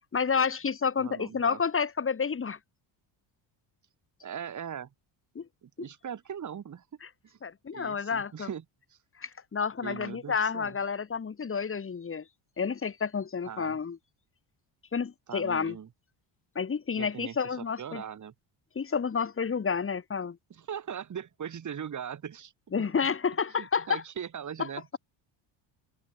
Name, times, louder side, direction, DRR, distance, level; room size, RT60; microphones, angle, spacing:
voice 1, 0.1-2.6 5.3-5.5 7.4-8.5 9.2-12.2 12.6-14.0 14.9-15.8 16.5-18.0 18.8-20.4 22.7-24.0, left 6 dB, 25° left, 2.6 m, -30 dB
voice 2, 1.0-1.6 4.2-4.9 5.6-6.9 7.2-7.4 7.7-8.6 8.9-9.0 9.8-10.8 13.5-13.8 15.3-15.9 16.9-18.3 20.5-22.5 22.8-22.9 23.6-25.0, right 8 dB, 35° right, 3.0 m, -40 dB
cardioid pair, 130°, 48 cm